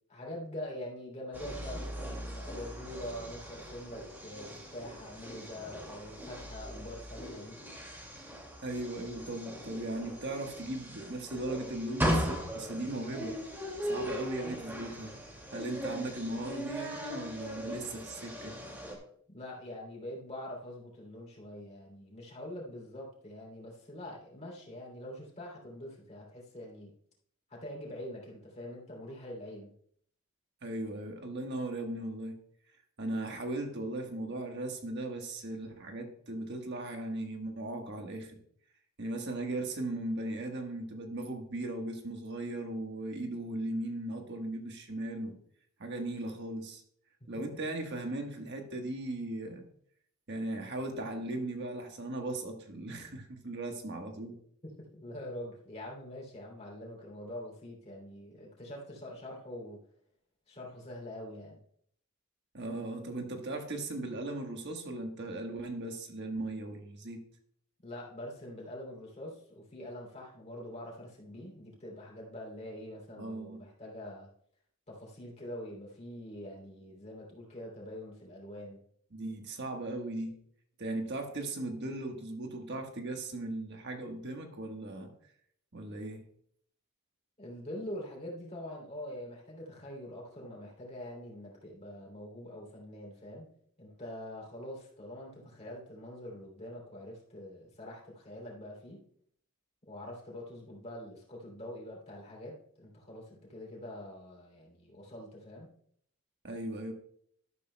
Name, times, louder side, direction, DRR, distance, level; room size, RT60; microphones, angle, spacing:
voice 1, 0.1-7.6 19.3-26.9 27.5-29.7 47.2-47.3 54.8-59.9 60.5-61.6 67.8-74.3 74.9-78.8 87.4-93.5 93.8-99.0 99.9-105.7, left 1 dB, 30° left, -3 dB, 2.9 m, -44 dB
sound 1, 1.3-19.0, equal, 10° right, 2.1 m, -39 dB
voice 2, 8.6-13.4 13.8-15.2 15.5-18.6 30.6-32.4 33.0-38.4 39.0-45.4 45.8-46.8 47.3-49.6 50.3-54.4 62.5-67.2 73.2-73.6 79.1-80.4 80.8-85.1 85.7-86.2 106.4-106.9, right 2 dB, 55° right, 4 dB, 1.3 m, -37 dB
12.5 x 12.0 x 2.2 m, 0.65 s
head